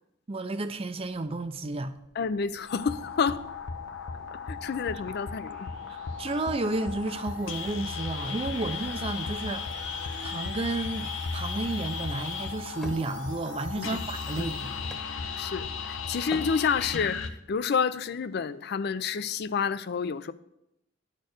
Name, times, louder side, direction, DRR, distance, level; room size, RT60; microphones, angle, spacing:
voice 1, 0.3-1.9 6.2-9.7 10.2-14.8, right 2 dB, 30° right, 0.4 m, -32 dB
sound 1, 2.0-15.3, right 5 dB, 70° right, 1.2 m, -52 dB
voice 2, 2.2-3.4 4.5-5.7 13.8-14.0 14.4-14.5 15.4-20.3, left 6 dB, 55° left, 0.4 m, -29 dB
sound 2, 2.7-17.3, left 5 dB, 85° left, 0.7 m, -35 dB
Wood, 12.8-15.8 16.3-17.2, left 1 dB, ahead, 1.0 m, -46 dB
10.5 x 4.5 x 6.4 m
head